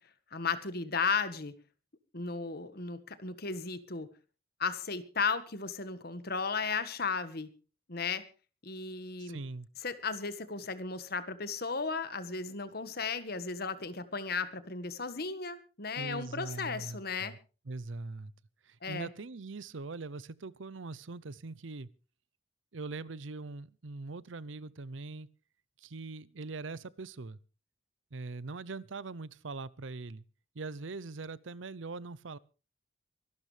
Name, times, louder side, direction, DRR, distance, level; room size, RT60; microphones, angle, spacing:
voice 1, 0.3-1.6 2.1-4.1 4.6-7.5 7.9-8.3 8.6-9.4 9.8-17.4 18.8-19.1, left 5 dB, 55° left, 1.5 m, -35 dB
voice 2, 9.2-9.7 15.9-17.4 17.7-18.3 18.6-21.9 22.7-25.3 25.8-27.4 28.1-30.2 30.5-32.4, right 3 dB, 80° right, 0.7 m, -42 dB
24.5 x 12.0 x 3.3 m
head